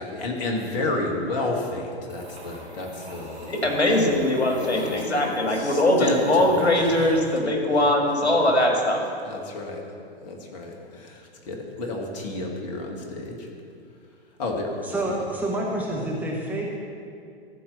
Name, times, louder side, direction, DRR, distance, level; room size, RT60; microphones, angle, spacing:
voice 1, 0.0-6.9 8.2-8.3 9.2-9.8 10.2-13.5 14.4-15.1, left 2 dB, 40° left, 1 dB, 1.8 m, -31 dB
sound 1, 2.1-7.4, right 1 dB, 85° right, 2.8 m, -40 dB
voice 2, 3.6-9.0, left 1 dB, 75° left, 1 dB, 1.9 m, -21 dB
voice 3, 14.9-16.8, right 1 dB, 5° right, -3 dB, 0.7 m, -28 dB
13.5 x 4.6 x 6.8 m, 2.4 s
figure-of-eight pair, 115°, 33 cm